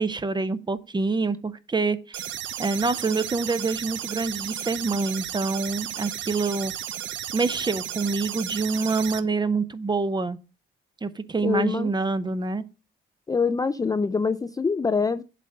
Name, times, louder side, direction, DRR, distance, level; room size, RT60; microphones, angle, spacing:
voice 1, 0.0-2.2 2.6-6.7 7.3-10.4 11.0-12.6, right 3 dB, 20° right, 13 dB, 0.7 m, -26 dB
sound 1, 2.1-9.2, right 11 dB, 70° right, 0.6 m, -34 dB
voice 2, 11.4-11.9 13.3-15.2, left 5 dB, 20° left, 11 dB, 0.4 m, -24 dB
7.6 x 3.8 x 6.5 m, 0.31 s
cardioid pair, 90°, 20 cm